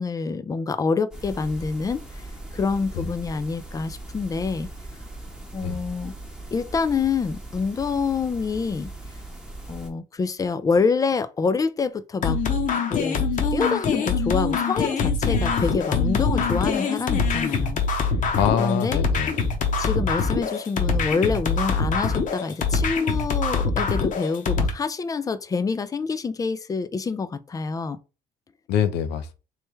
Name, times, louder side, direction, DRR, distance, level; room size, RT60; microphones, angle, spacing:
voice 1, 0.0-2.0 2.5-4.7 5.5-6.1 6.5-8.9 9.7-12.4 12.9-13.2 13.5-17.8 18.6-19.0 19.8-28.0, left 4 dB, 20° left, 0.4 m, -26 dB
sound 1, 1.1-9.9, right 2 dB, 5° right, 0.9 m, -39 dB
sound 2, 12.2-24.7, left 5 dB, 50° left, 0.9 m, -24 dB
voice 2, 18.4-19.3 28.7-29.4, left 8 dB, 85° left, 0.6 m, -24 dB
3.3 x 3.2 x 3.1 m
cardioid pair, 110°, 17 cm